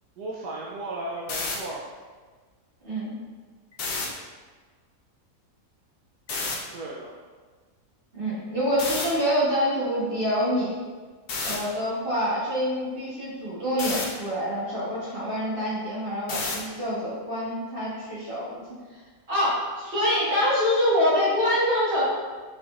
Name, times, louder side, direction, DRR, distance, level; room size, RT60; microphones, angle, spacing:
voice 1, 0.2-1.9 6.7-7.1, right 2 dB, 80° right, -3 dB, 1.1 m, -35 dB
sound 1, 1.2-1.6 3.7-4.1 6.3-6.6 8.8-9.1 11.3-11.6 13.8-14.1 16.3-16.7, left 3 dB, 60° left, 0.6 m, -29 dB
voice 2, 2.8-3.2 8.1-10.7 11.4-18.6 19.3-22.0, equal, 35° right, -8 dB, 1.6 m, -26 dB
4.6 x 4.1 x 2.4 m, 1.4 s
omnidirectional pair, 1.7 m